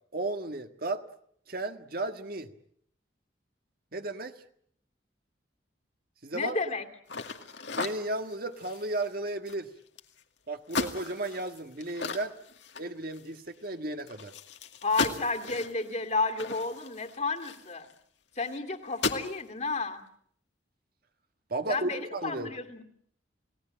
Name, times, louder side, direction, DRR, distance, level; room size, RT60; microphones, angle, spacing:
voice 1, 0.1-1.0 1.5-2.5 3.9-4.4 6.2-6.6 7.7-9.7 10.5-12.3 12.8-14.3 21.5-22.5, right 2 dB, 55° right, 7 dB, 1.7 m, -34 dB
voice 2, 6.3-6.9 14.8-17.9 18.4-20.0 21.7-22.8, left 3 dB, 40° left, 5 dB, 2.6 m, -31 dB
sound 1, 7.1-10.2 10.7-13.4 13.7-13.8 14.1-18.0 18.4-18.6 18.9-19.4, left 4 dB, 75° left, 2.2 m, -37 dB
30.0 x 18.0 x 8.9 m, 0.66 s
head